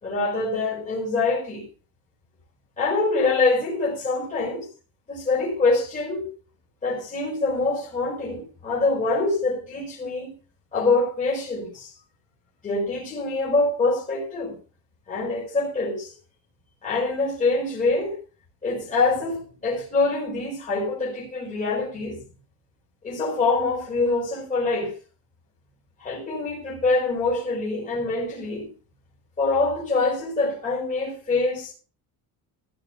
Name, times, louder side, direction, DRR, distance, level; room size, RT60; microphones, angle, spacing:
voice 1, 0.0-1.7 2.8-4.7 5.1-6.3 6.8-10.3 10.7-11.9 12.6-14.6 15.1-16.1 16.8-18.2 18.6-22.2 23.0-24.9 26.0-28.7 29.4-31.7, left 3 dB, 20° left, 4.9 m, -25 dB
14.5 x 5.8 x 5.7 m
cardioid pair, 165°, 36 cm